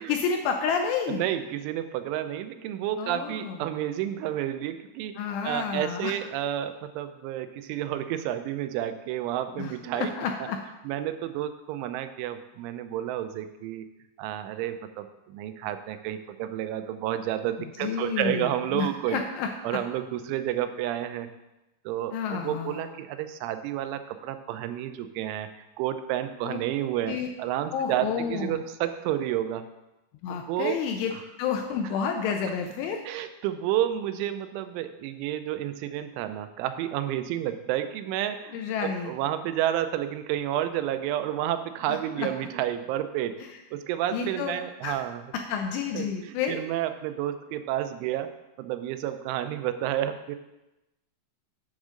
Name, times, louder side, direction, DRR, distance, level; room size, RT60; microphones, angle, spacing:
voice 1, 0.0-1.2 3.0-3.6 5.2-6.1 9.6-10.6 17.6-19.8 22.1-22.9 26.4-26.6 27.1-27.3 27.7-28.6 30.2-33.0 38.5-39.1 41.9-42.3 44.1-44.5 44.8-45.0 45.3-46.6, left 6 dB, 80° left, 4 dB, 2.5 m, -30 dB
voice 2, 1.1-5.1 5.4-10.1 10.9-13.9 14.2-19.2 19.6-21.3 21.9-29.6 30.5-30.8 33.1-43.4 43.7-45.2 45.9-48.3 48.6-50.4, right 12 dB, 90° right, 9 dB, 3.0 m, -30 dB
9.0 x 3.7 x 6.4 m, 0.97 s
omnidirectional pair, 5.4 m